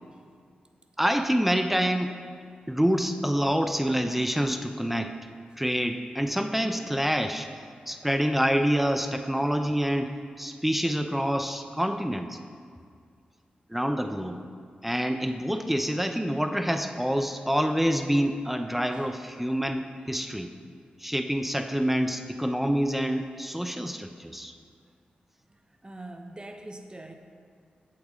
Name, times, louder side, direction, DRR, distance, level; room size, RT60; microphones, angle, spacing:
voice 1, 1.0-2.1 2.7-5.2 5.6-7.5 7.9-10.1 10.4-12.4 13.7-14.4 14.8-20.5 21.0-24.5, equal, 5° right, 7 dB, 0.6 m, -27 dB
voice 2, 9.3-9.8 18.9-19.1 25.8-27.1, right 1 dB, 25° right, 5 dB, 0.9 m, -45 dB
8.6 x 7.8 x 3.7 m, 2.1 s
cardioid pair, 40°, 3 cm